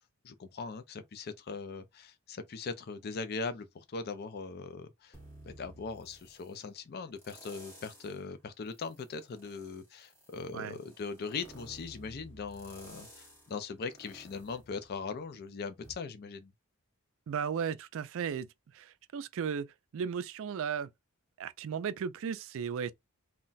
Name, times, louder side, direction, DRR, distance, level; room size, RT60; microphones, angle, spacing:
voice 1, 0.2-5.2 5.5-16.5, left 4 dB, 45° left, 0.4 m, -40 dB
sound 1, 5.1-6.5 7.2-8.2 8.7-15.4 15.8-15.9, right 1 dB, 10° left, 0.8 m, -54 dB
voice 2, 17.3-18.5 18.7-20.9 21.4-22.9, right 7 dB, 60° right, 0.3 m, -35 dB
2.2 x 2.1 x 3.9 m
head